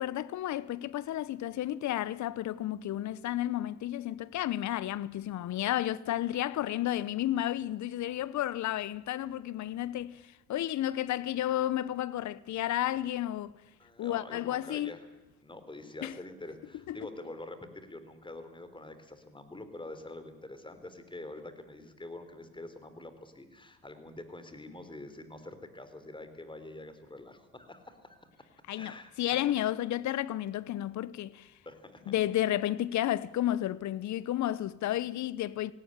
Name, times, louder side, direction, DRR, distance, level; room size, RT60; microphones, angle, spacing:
voice 1, 0.0-10.2 10.5-13.5 14.0-15.0 16.0-16.1 16.9-17.0 28.7-31.5 32.1-35.7, left 13 dB, 55° left, 0.9 m, -32 dB
voice 2, 13.8-15.1 15.4-28.3 28.8-29.5 31.7-32.2, left 2 dB, 15° left, 3.6 m, -46 dB
17.5 x 17.0 x 10.0 m
supercardioid pair, 70°, 33 cm